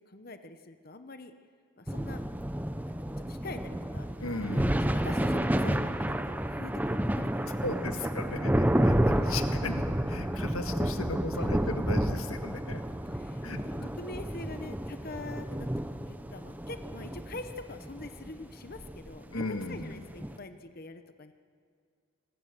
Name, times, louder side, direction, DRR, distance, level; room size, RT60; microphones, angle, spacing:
voice 1, 0.1-1.3 1.8-2.2 2.8-4.7 4.9-7.9 8.2-8.6 9.2-9.4 10.6-10.8 11.4-11.5 13.1-15.7 16.1-21.3, left 2 dB, 45° left, 8 dB, 0.9 m, -45 dB
sound 1, 1.9-20.4, right 1 dB, 10° right, 0.6 m, -30 dB
voice 2, 4.2-5.0 7.6-12.8 13.4-13.9 19.3-20.0, left 2 dB, 85° left, 6 dB, 1.7 m, -37 dB
25.0 x 19.5 x 6.7 m, 2.2 s
head